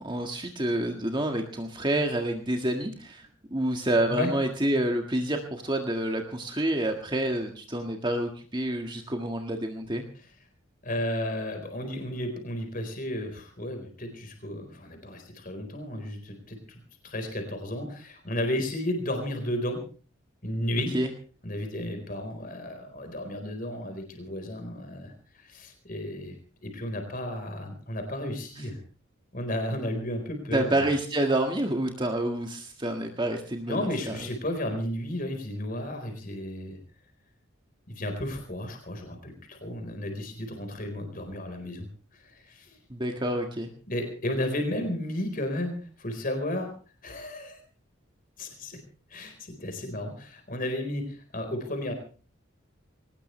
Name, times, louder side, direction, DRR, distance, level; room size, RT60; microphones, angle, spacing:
voice 1, 0.0-3.2 3.5-10.0 20.9-21.1 30.5-34.3 42.9-43.7, right 1 dB, 20° right, 3 dB, 1.7 m, -28 dB
voice 2, 10.8-19.8 20.4-20.9 21.4-26.3 26.6-28.8 29.3-30.9 33.7-36.8 37.9-41.9 42.2-42.8 43.9-46.7 47.0-47.6 48.4-48.8 49.1-51.9, left 1 dB, 40° left, 5 dB, 4.4 m, -33 dB
22.0 x 19.0 x 3.3 m, 0.39 s
head